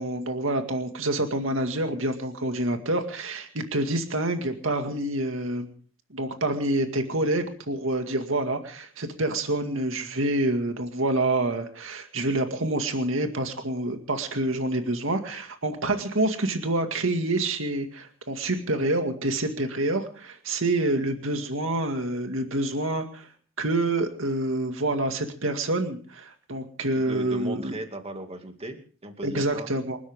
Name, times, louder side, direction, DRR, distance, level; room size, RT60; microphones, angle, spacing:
voice 1, 0.0-5.7 6.1-23.3 23.6-27.7 29.2-30.0, right 2 dB, 80° right, 5 dB, 2.1 m, -27 dB
voice 2, 26.9-29.7, right 1 dB, 30° right, 5 dB, 2.4 m, -37 dB
29.0 x 12.5 x 3.7 m, 0.43 s
head